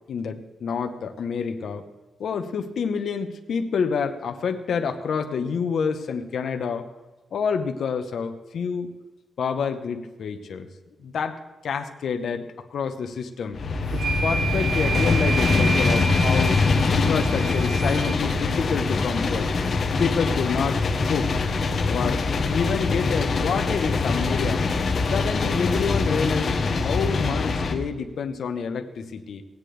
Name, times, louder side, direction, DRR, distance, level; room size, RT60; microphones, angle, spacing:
voice 1, 0.1-1.8 2.2-6.9 7.3-9.0 9.4-10.7 11.0-13.6 13.9-16.6 16.9-19.5 20.0-21.3 21.9-24.6 25.1-26.5 26.8-29.4, left 6 dB, 70° left, 6 dB, 1.0 m, -28 dB
sound 1, 13.5-27.7, left 4 dB, 45° left, 1.1 m, -23 dB
sound 2, 13.9-18.2, right 5 dB, 85° right, 1.0 m, -30 dB
17.0 x 9.7 x 3.4 m, 1.2 s
wide cardioid pair, 170°, 0 cm